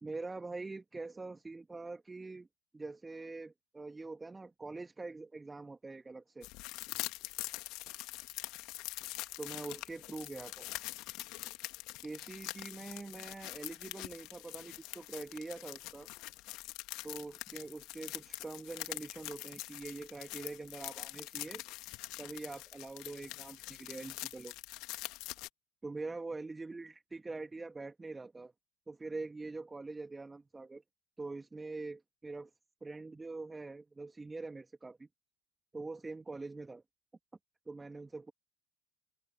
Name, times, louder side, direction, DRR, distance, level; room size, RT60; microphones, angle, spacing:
voice 1, 0.0-2.5 2.7-6.5 9.4-10.7 12.0-16.1 17.0-21.6 22.2-24.5 25.8-28.5 28.9-30.8 31.2-32.5 32.8-35.1 35.7-36.8 37.7-38.3, right 3 dB, 15° right, 2.7 m, -44 dB
sound 1, 6.4-25.5, left 20 dB, 55° left, 2.4 m, -44 dB
open air
figure-of-eight pair, 70°, 0 cm